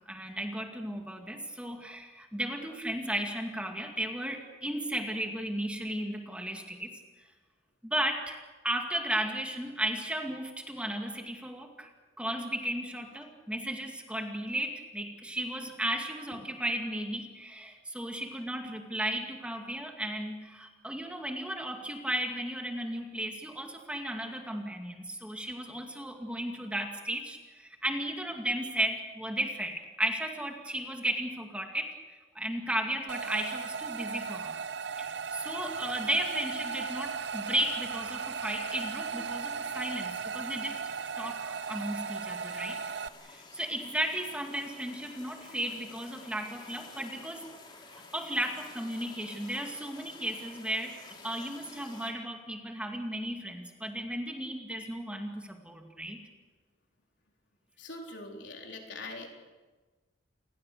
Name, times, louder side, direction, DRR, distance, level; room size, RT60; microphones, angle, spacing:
voice 1, 0.0-7.0 7.8-11.9 12.2-34.5 35.0-40.8 41.2-42.8 43.2-47.5 47.9-56.2, right 1 dB, 5° right, 3 dB, 2.2 m, -35 dB
sound 1, 33.1-43.1, right 6 dB, 60° right, 0.7 m, -36 dB
sound 2, 37.1-52.1, left 3 dB, 25° left, 3.3 m, -52 dB
voice 2, 57.8-59.5, left 2 dB, 70° left, 2 dB, 4.0 m, -43 dB
29.0 x 20.5 x 6.7 m, 1.3 s
head